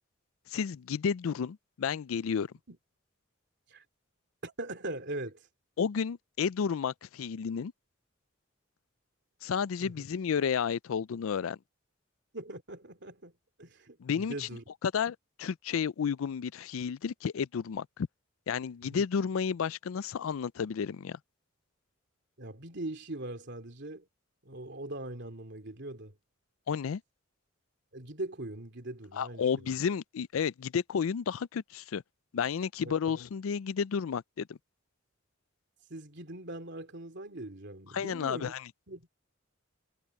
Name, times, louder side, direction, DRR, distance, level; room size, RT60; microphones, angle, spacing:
voice 1, 0.5-2.5 5.8-7.7 9.4-11.6 14.0-14.5 14.8-18.1 18.5-21.2 26.7-27.0 29.1-32.0 32.3-34.6 37.9-38.7, left 6 dB, 80° left, 0.4 m, -32 dB
voice 2, 4.4-5.4 9.8-10.0 12.3-13.3 13.6-14.6 18.9-19.0 22.4-24.1 24.4-26.1 27.9-29.7 32.8-32.9 35.9-38.5 38.9-39.1, right 2 dB, 55° right, 3.0 m, -41 dB
head